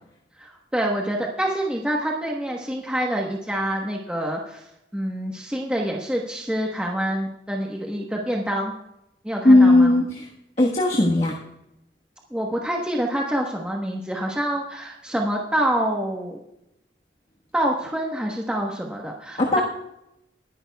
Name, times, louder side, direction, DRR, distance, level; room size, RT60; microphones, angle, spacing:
voice 1, 0.4-4.6 4.9-8.7 9.2-9.9 12.3-16.4 17.5-19.6, right 1 dB, 5° right, -1 dB, 1.1 m, -26 dB
voice 2, 9.4-10.3 10.6-11.3 19.4-19.6, left 2 dB, 35° left, -2 dB, 1.4 m, -16 dB
21.5 x 11.0 x 2.3 m, 0.84 s
head